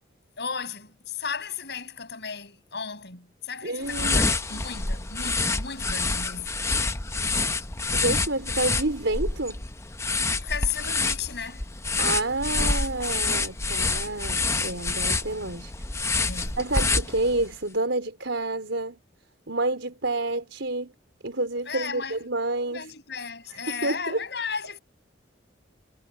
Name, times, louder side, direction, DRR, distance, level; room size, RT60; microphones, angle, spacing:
voice 1, 0.4-6.6 10.4-11.7 16.2-16.6 21.6-22.2 22.7-24.8, left 6 dB, 60° left, 7.1 m, -35 dB
voice 2, 3.6-4.2 7.9-9.6 12.0-15.7 16.1-19.0 19.5-20.9 21.2-22.9 23.5-24.2, right 2 dB, 80° right, 4.3 m, -29 dB
sound 1, 3.8-17.5, left 3 dB, 15° left, 0.7 m, -27 dB
head